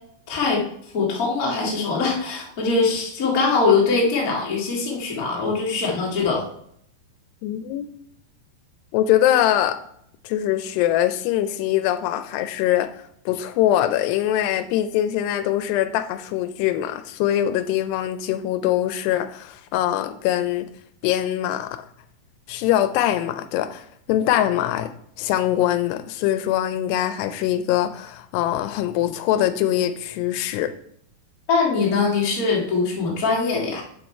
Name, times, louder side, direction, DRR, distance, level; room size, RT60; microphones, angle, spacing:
voice 1, 0.3-0.6 0.9-6.4 31.5-33.8, left 4 dB, 40° left, -2 dB, 1.2 m, -22 dB
voice 2, 7.4-7.9 8.9-9.8 10.2-12.9 13.3-20.7 21.0-21.8 22.5-24.9 25.2-30.7, left 12 dB, 85° left, 11 dB, 2.6 m, -23 dB
7.6 x 5.4 x 4.4 m, 0.69 s
omnidirectional pair, 4.8 m